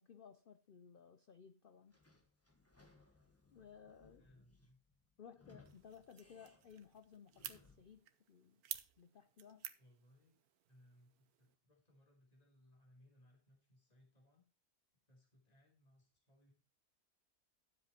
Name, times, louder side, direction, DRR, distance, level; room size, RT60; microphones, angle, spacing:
voice 1, 0.0-2.0 3.5-4.2 5.2-8.6 9.0-9.7, left 7 dB, 75° left, 0.5 m, -59 dB
Sliding door / Squeak, 1.9-8.0, left 3 dB, 10° left, 1.4 m, -67 dB
voice 2, 3.9-4.8 9.8-10.4 10.7-14.5 15.1-16.5, left 1 dB, 25° left, 3.4 m, -68 dB
sound 1, 5.6-11.5, right 11 dB, 75° right, 1.2 m, -53 dB
10.5 x 7.6 x 4.3 m
omnidirectional pair, 1.6 m